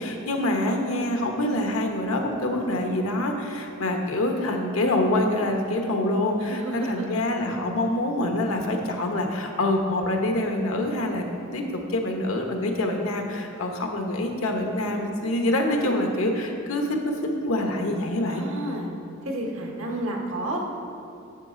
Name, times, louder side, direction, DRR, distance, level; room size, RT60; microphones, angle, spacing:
voice 1, 0.0-11.3 11.5-18.4, left 1 dB, 85° left, 3 dB, 1.0 m, -26 dB
voice 2, 4.1-4.5 6.4-7.1 18.3-18.9 19.2-20.6, right 1 dB, 80° right, 0 dB, 1.4 m, -31 dB
9.7 x 7.1 x 3.8 m, 2.6 s
head